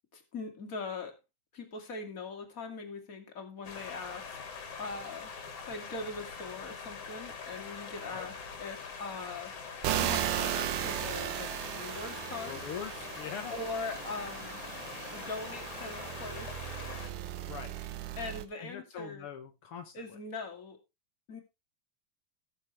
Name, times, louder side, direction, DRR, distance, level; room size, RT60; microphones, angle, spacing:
voice 1, 0.1-1.1 1.5-4.4 4.8-5.3 5.7-8.3 8.6-12.6 13.5-14.6 15.1-16.6 18.2-19.3 19.9-20.8 21.3-21.4, left 3 dB, 30° left, 5 dB, 2.1 m, -41 dB
sound 1, 3.6-17.1, left 5 dB, 50° left, 2.6 m, -44 dB
sound 2, 9.8-18.4, right 12 dB, 70° right, 2.3 m, -36 dB
sound 3, 11.5-17.8, right 1 dB, 25° right, 3.5 m, -55 dB
voice 2, 12.4-13.5 17.5-17.7 18.5-20.2, left 7 dB, 80° left, 5 dB, 1.2 m, -43 dB
19.0 x 6.5 x 3.3 m, 0.25 s
omnidirectional pair, 4.1 m